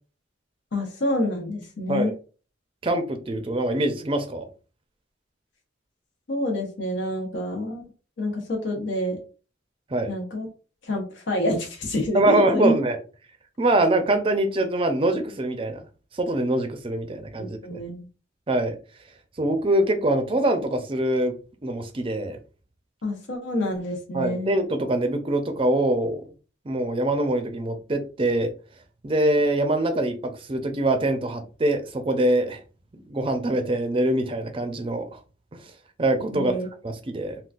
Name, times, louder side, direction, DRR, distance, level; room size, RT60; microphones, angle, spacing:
voice 1, 0.7-2.1 6.3-7.8 8.2-9.2 10.1-10.5 10.8-12.7 17.6-18.1 23.0-24.6 36.3-36.7, left 1 dB, 75° left, 0.9 m, -27 dB
voice 2, 2.8-4.5 9.9-10.1 12.1-13.0 13.6-15.8 16.1-17.8 18.5-18.7 19.4-21.3 21.6-22.4 24.1-26.2 26.7-28.5 29.0-32.6 32.9-35.2 36.0-36.6 36.8-37.4, right 1 dB, 30° right, 0.5 m, -24 dB
3.7 x 2.3 x 2.4 m
head